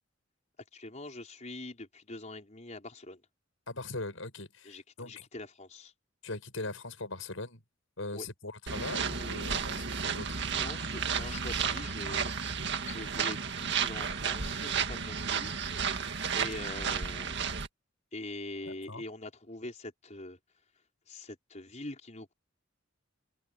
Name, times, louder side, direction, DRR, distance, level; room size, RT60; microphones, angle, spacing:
voice 1, 0.7-3.2 4.6-5.9 8.1-8.3 10.5-15.9 16.3-17.4 18.1-20.4 21.1-22.3, left 2 dB, 35° left, 4.9 m, -44 dB
voice 2, 3.7-5.2 6.2-7.6 8.0-10.4 18.7-19.0, left 2 dB, 80° left, 6.6 m, -40 dB
sound 1, 8.7-17.7, right 6 dB, 60° right, 2.0 m, -33 dB
head